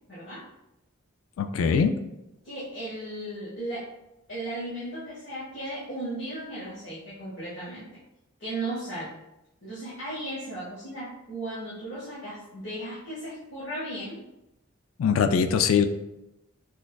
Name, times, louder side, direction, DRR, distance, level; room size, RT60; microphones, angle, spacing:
voice 1, 0.1-0.4 2.4-3.8 4.3-7.9 8.4-9.1 9.6-14.2, right 1 dB, 65° left, -10 dB, 1.2 m, -36 dB
voice 2, 1.4-1.9 15.0-15.9, left 6 dB, 85° left, 8 dB, 0.3 m, -22 dB
6.1 x 2.3 x 2.2 m, 0.90 s
head